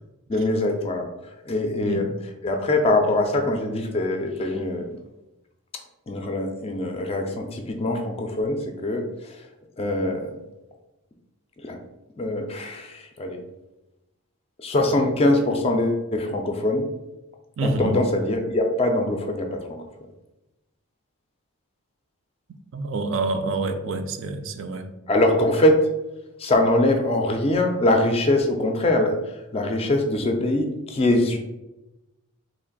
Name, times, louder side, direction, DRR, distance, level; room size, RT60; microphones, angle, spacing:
voice 1, 0.3-1.1 1.5-2.1 2.4-4.9 6.1-9.4 9.8-10.3 11.6-11.8 12.2-13.4 14.6-16.9 17.6-19.8 25.1-25.9 26.4-31.4, left 1 dB, 25° left, 4 dB, 0.4 m, -23 dB
voice 2, 1.8-2.1 17.6-18.0 22.7-24.9, right 3 dB, 60° right, 7 dB, 0.4 m, -27 dB
3.1 x 2.5 x 3.9 m, 0.98 s
head